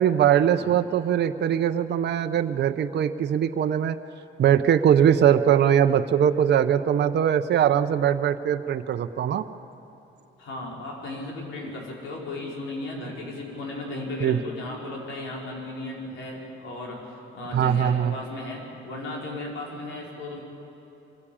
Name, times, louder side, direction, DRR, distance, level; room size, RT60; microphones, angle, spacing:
voice 1, 0.0-4.0 4.4-9.4 14.2-14.4 17.5-18.1, right 9 dB, 60° right, 8 dB, 0.7 m, -21 dB
voice 2, 10.4-20.4, left 2 dB, 80° left, -2 dB, 4.9 m, -35 dB
24.0 x 15.5 x 8.7 m, 2.9 s
cardioid pair, 90°, 20 cm